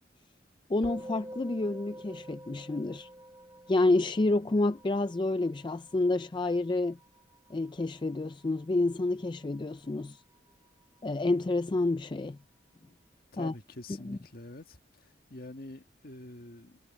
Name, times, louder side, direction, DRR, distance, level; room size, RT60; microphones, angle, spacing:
voice 1, 0.7-3.1 3.7-7.0 7.5-10.2 11.0-12.4 13.4-13.5 14.0-14.2, left 2 dB, 25° left, 0.4 m, -29 dB
Musical instrument, 0.8-10.4, right 1 dB, 20° right, 2.3 m, -49 dB
voice 2, 13.3-16.8, left 2 dB, 55° left, 1.7 m, -46 dB
head